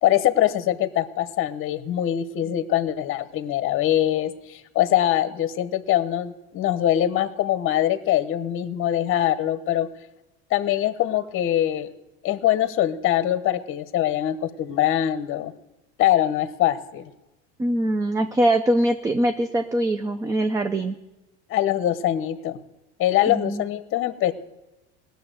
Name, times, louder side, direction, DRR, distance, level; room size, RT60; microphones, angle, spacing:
voice 1, 0.0-9.9 10.5-11.9 12.2-15.5 16.0-17.1 21.5-22.6 23.0-24.3, left 12 dB, 40° left, 13 dB, 0.9 m, -23 dB
voice 2, 17.6-21.0 23.3-23.6, right 1 dB, 10° right, 9 dB, 0.4 m, -22 dB
17.5 x 6.8 x 7.9 m, 1.0 s
supercardioid pair, 125°, 32 cm